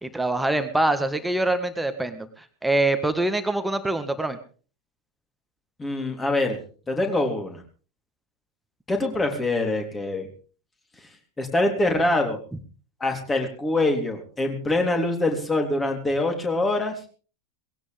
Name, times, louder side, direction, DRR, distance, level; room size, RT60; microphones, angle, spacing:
voice 1, 0.0-2.3 2.6-4.4, right 2 dB, 5° right, 9 dB, 1.7 m, -24 dB
voice 2, 5.8-6.6 6.9-7.6 8.9-10.3 11.4-12.4 13.0-16.9, left 2 dB, 15° left, 4 dB, 3.5 m, -24 dB
20.0 x 17.0 x 3.6 m, 0.39 s
figure-of-eight pair, 85°, 0 cm